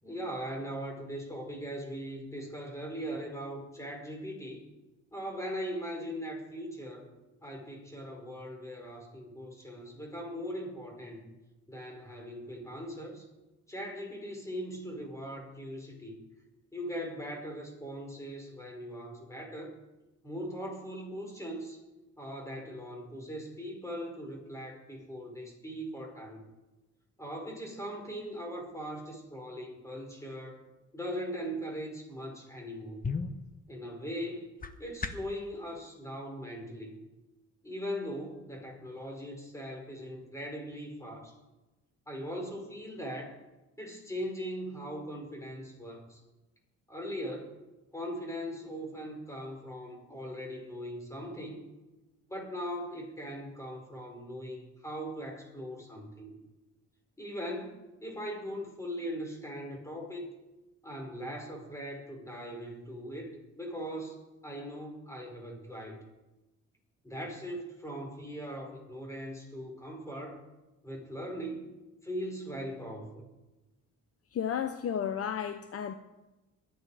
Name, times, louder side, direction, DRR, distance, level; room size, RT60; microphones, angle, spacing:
voice 1, 0.0-4.6 5.1-7.0 7.4-11.2 11.7-13.2 13.7-16.1 16.7-19.7 20.2-21.8 22.2-26.4 27.2-30.6 30.9-33.0 33.7-34.5 34.8-37.0 37.6-41.3 42.1-43.4 43.8-46.2 46.9-47.5 47.9-51.6 52.3-56.4 57.2-60.3 60.8-64.2 64.4-66.0 67.0-70.4 70.8-71.7 72.0-73.2, equal, 10° left, 1 dB, 5.5 m, -40 dB
sound 1, 32.8-35.4, left 4 dB, 30° left, 1.4 m, -39 dB
voice 2, 74.3-75.9, left 8 dB, 50° left, 9 dB, 0.9 m, -32 dB
22.5 x 9.8 x 5.1 m, 1.1 s
cardioid pair, 90°, 30 cm